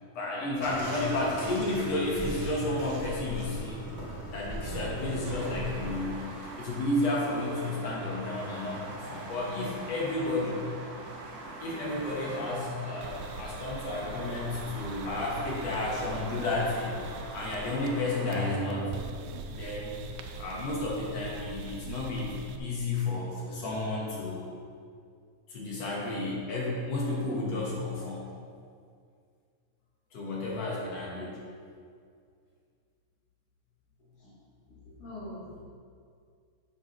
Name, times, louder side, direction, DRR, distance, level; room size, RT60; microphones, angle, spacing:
voice 1, 0.2-3.8 4.3-6.2 6.6-10.6 11.6-17.0 17.3-18.9 19.5-20.0 20.4-24.4 25.5-28.2 30.1-31.4, left 2 dB, 60° left, -4 dB, 2.3 m, -32 dB
Bathtub (filling or washing), 0.6-6.0, right 1 dB, 35° right, 0.7 m, -38 dB
sound 1, 5.2-18.6, right 2 dB, 65° right, 2.0 m, -43 dB
sound 2, 13.0-18.1 18.3-22.6, right 4 dB, 90° right, 2.2 m, -41 dB
voice 2, 34.9-35.6, left 1 dB, 80° left, -14 dB, 4.1 m, -43 dB
11.0 x 7.0 x 3.2 m, 2.2 s
omnidirectional pair, 3.6 m